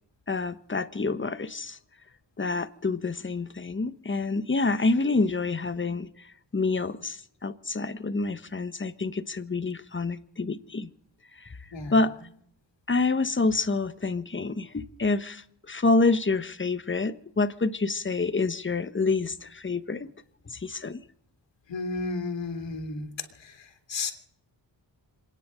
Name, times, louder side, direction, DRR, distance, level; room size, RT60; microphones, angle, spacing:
voice 1, 0.3-1.8 2.4-6.3 6.5-10.9 11.4-11.5 11.9-12.1 12.9-20.1 20.5-21.0, left 3 dB, 25° left, 1.2 m, -27 dB
voice 2, 21.7-23.1 23.4-23.6 23.9-24.1, left 3 dB, 75° left, 2.7 m, -32 dB
27.5 x 10.0 x 5.1 m
cardioid pair, 60°, 44 cm